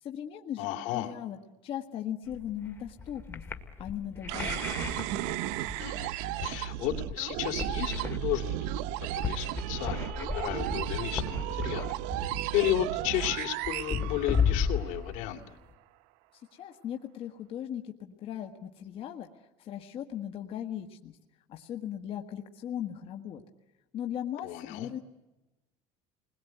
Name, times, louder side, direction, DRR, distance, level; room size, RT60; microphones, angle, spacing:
voice 1, 0.0-0.7 0.9-3.4 3.8-4.9 16.3-21.2 21.5-23.4 23.9-25.0, left 10 dB, 45° left, 3 dB, 1.6 m, -38 dB
voice 2, 0.6-1.1 5.8-6.1 6.4-8.7 9.1-11.9 12.2-15.4 24.4-24.9, left 13 dB, 75° left, 5 dB, 2.7 m, -33 dB
sound 1, 2.3-15.7, left 5 dB, 15° left, 2.1 m, -35 dB
sound 2, 4.3-14.9, right 13 dB, 80° right, 0.9 m, -34 dB
29.5 x 21.0 x 9.3 m, 1.1 s
cardioid pair, 145°, 13 cm